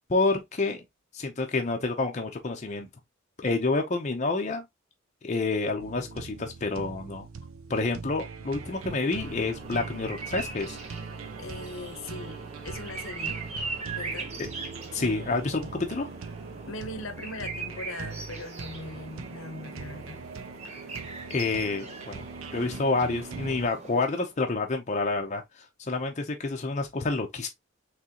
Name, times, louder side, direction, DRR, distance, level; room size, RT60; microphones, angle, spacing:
voice 1, 0.1-0.8 1.1-2.9 3.4-4.6 5.2-7.3 7.7-10.8 14.4-14.5 14.9-16.1 21.3-22.2 22.5-25.4 25.9-27.5, left 3 dB, 35° left, 0.6 m, -28 dB
sound 1, 5.8-23.7, right 5 dB, 75° right, 0.6 m, -41 dB
sound 2, 8.4-24.4, right 4 dB, 30° right, 1.1 m, -41 dB
voice 2, 11.4-13.4 13.9-14.3 16.7-20.2, left 2 dB, 75° left, 0.9 m, -40 dB
3.7 x 3.2 x 2.8 m
head